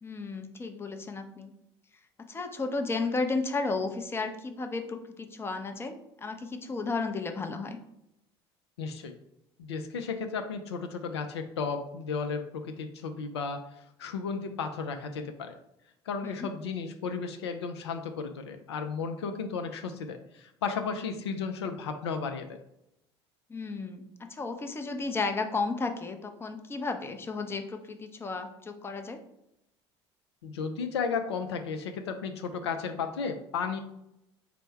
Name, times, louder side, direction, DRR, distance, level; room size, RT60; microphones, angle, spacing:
voice 1, 0.0-1.5 2.3-7.8 16.2-16.5 23.5-24.0 24.3-29.2, left 3 dB, 15° left, 6 dB, 0.5 m, -33 dB
voice 2, 8.8-9.2 9.6-13.6 14.0-15.6 16.1-22.6 30.4-33.8, left 5 dB, 70° left, 6 dB, 0.4 m, -34 dB
4.2 x 2.0 x 4.4 m, 0.82 s
figure-of-eight pair, 60°, 14 cm